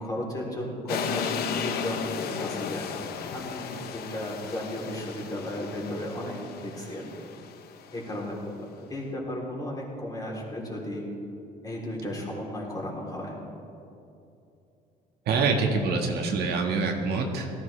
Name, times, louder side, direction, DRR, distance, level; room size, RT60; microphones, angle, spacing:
voice 1, 0.0-3.0 3.3-7.1 7.9-11.1 11.6-13.4, left 1 dB, 20° left, -3 dB, 3.7 m, -34 dB
sound 1, 0.9-8.0, left 7 dB, 65° left, 0.9 m, -35 dB
voice 2, 15.2-17.5, right 4 dB, 70° right, 2 dB, 1.8 m, -25 dB
18.0 x 14.0 x 3.4 m, 2.7 s
cardioid pair, 110°, 17 cm